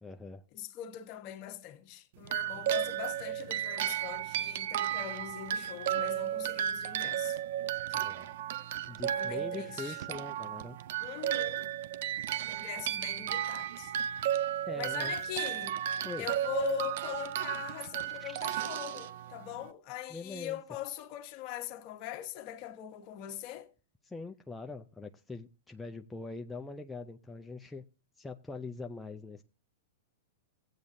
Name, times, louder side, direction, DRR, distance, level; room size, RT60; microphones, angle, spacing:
voice 1, 0.0-0.4 7.9-8.3 8.9-10.8 14.7-15.2 16.0-16.3 20.1-20.6 24.0-27.9 28.2-29.4, left 3 dB, 5° left, 0.4 m, -42 dB
voice 2, 0.5-7.4 7.9-8.1 9.1-10.0 11.0-11.7 12.5-14.4 14.8-15.7 16.2-23.7, left 13 dB, 40° left, 1.1 m, -41 dB
sound 1, 2.2-19.7, right 11 dB, 60° right, 0.5 m, -34 dB
sound 2, 17.6-19.0, right 3 dB, 15° right, 0.9 m, -54 dB
15.5 x 8.4 x 2.6 m
hypercardioid pair, 140°, 0 cm